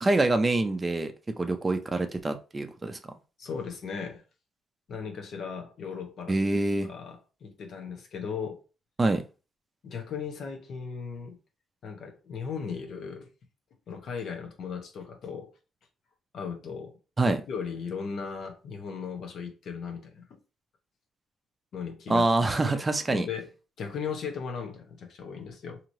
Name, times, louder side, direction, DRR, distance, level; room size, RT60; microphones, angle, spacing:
voice 1, 0.0-3.0 6.3-6.9 9.0-9.2 17.2-17.4 22.1-23.3, right 2 dB, 25° right, 0.4 m, -25 dB
voice 2, 3.4-4.2 4.9-6.4 6.8-8.6 9.8-11.4 11.8-13.3 13.9-15.5 16.3-16.9 17.2-20.4 21.7-23.5 23.8-25.8, left 6 dB, 65° left, 0.8 m, -37 dB
3.0 x 2.8 x 2.6 m
cardioid pair, 90°, 0 cm